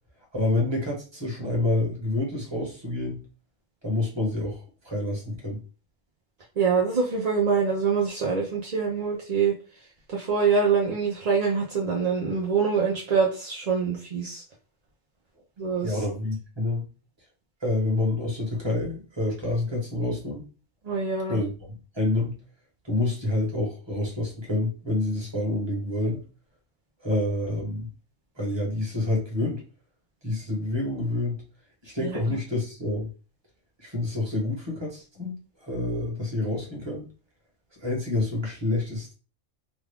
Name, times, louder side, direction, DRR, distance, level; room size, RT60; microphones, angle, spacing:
voice 1, 0.3-3.2 3.8-5.6 15.7-16.9 17.6-20.4 21.3-21.5 21.9-22.4 22.8-26.2 27.0-27.9 28.4-29.6 30.2-31.4 31.8-33.1 33.8-35.3 35.6-37.0 37.8-39.1, left 2 dB, 20° right, -1 dB, 1.1 m, -28 dB
voice 2, 6.6-9.5 10.1-14.4 15.6-16.0 20.8-21.4 32.0-32.4, right 5 dB, 45° right, -3 dB, 0.5 m, -25 dB
3.0 x 2.4 x 3.4 m, 0.35 s
omnidirectional pair, 1.3 m